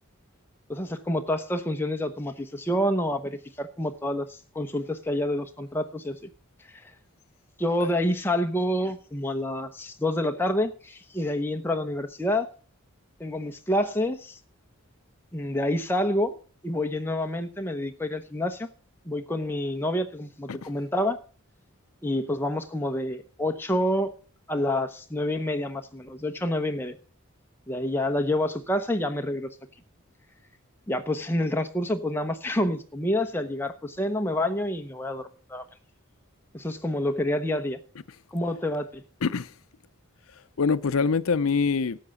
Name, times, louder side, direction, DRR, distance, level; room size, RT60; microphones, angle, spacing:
voice 1, 0.7-6.2 7.6-12.5 13.2-14.4 15.3-16.3 16.6-18.7 19.0-21.2 22.0-24.1 24.5-27.0 27.7-29.5 30.9-35.6 36.5-37.8 38.3-39.0, left 1 dB, 10° left, 0.9 m, -28 dB
voice 2, 39.2-39.5 40.6-42.0, left 5 dB, 80° left, 0.6 m, -25 dB
13.0 x 7.8 x 7.0 m
head